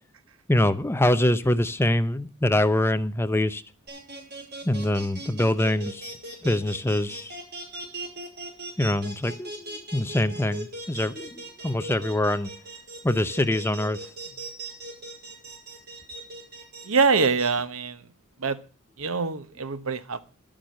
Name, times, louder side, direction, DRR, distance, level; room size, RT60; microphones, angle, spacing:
voice 1, 0.5-3.6 4.6-6.1 6.4-7.4 8.8-12.5 13.0-14.0, left 1 dB, 10° left, 0.7 m, -24 dB
sound 1, 3.9-17.5, right 1 dB, 50° right, 5.1 m, -38 dB
voice 2, 16.8-18.0 18.4-18.6 19.0-20.2, right 4 dB, 75° right, 1.1 m, -24 dB
12.0 x 8.8 x 6.4 m
head